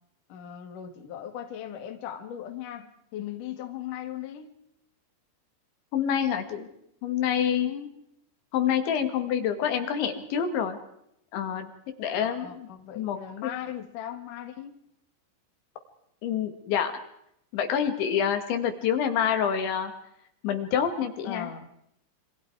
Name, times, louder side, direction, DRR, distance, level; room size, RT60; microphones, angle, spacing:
voice 1, 0.3-4.5 7.5-7.9 12.2-14.8 21.2-21.7, left 10 dB, 55° left, 6 dB, 2.9 m, -38 dB
voice 2, 5.9-6.7 7.0-7.7 8.5-10.8 11.3-11.7 12.0-12.7 13.0-13.2 13.4-13.5 16.2-16.9 17.5-19.9 20.4-21.5, left 8 dB, 70° left, 7 dB, 4.3 m, -27 dB
27.5 x 25.0 x 4.8 m, 0.76 s
omnidirectional pair, 5.5 m